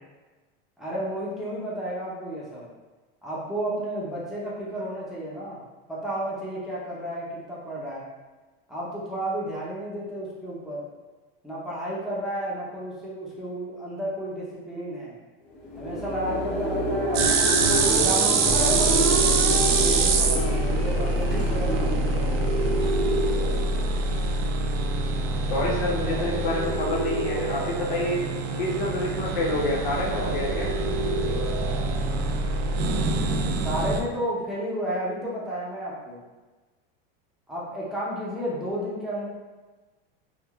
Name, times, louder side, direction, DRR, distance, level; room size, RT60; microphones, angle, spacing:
voice 1, 0.8-2.7 3.2-5.6 5.9-8.1 8.7-10.8 11.4-15.1 15.8-17.5 17.8-22.2 33.6-36.2 37.5-39.3, right 1 dB, ahead, -8 dB, 0.7 m, -32 dB
sound 1, 15.5-24.2, left 1 dB, 40° left, 0.9 m, -30 dB
sound 2, 17.1-34.0, right 3 dB, 50° right, 0.4 m, -24 dB
voice 2, 25.5-28.2 28.6-30.7, left 2 dB, 80° left, -3 dB, 0.8 m, -28 dB
3.5 x 2.0 x 2.3 m, 1.2 s
supercardioid pair, 120°, 29 cm